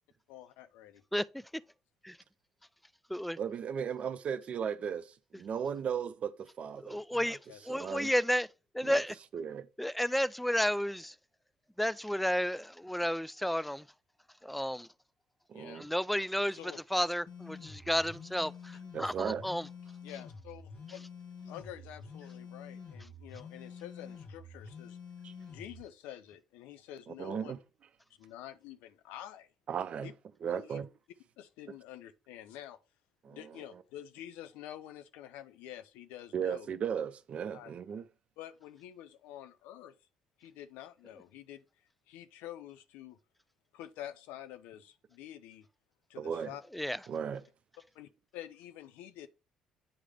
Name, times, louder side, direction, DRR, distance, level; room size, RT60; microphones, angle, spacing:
voice 1, 0.3-1.0 7.5-7.6 15.5-15.8 16.5-16.8 20.0-21.0 21.4-25.0 25.5-27.5 28.2-29.5 30.0-30.1 30.5-30.8 31.4-32.8 33.3-36.7 37.5-37.7 38.4-39.9 40.4-41.6 42.1-43.2 43.7-45.7 46.1-46.6 47.9-49.3, left 12 dB, 70° left, 0.5 m, -48 dB
voice 2, 3.4-7.4 7.7-8.1 8.8-9.0 9.3-9.7 15.5-15.9 18.9-19.5 25.2-25.3 27.1-27.6 29.7-30.1 30.4-30.9 33.2-33.8 36.3-38.1 46.1-46.5 47.1-47.5, right 7 dB, 50° right, 0.5 m, -36 dB
voice 3, 6.8-7.4 7.7-8.5 8.7-9.1 9.8-11.1 11.8-13.8 14.4-14.9 15.8-19.7 46.7-47.0, equal, ahead, 0.3 m, -32 dB
sound 1, 17.3-25.8, left 5 dB, 50° left, 1.3 m, -48 dB
8.7 x 3.2 x 3.5 m
hypercardioid pair, 55°, 3 cm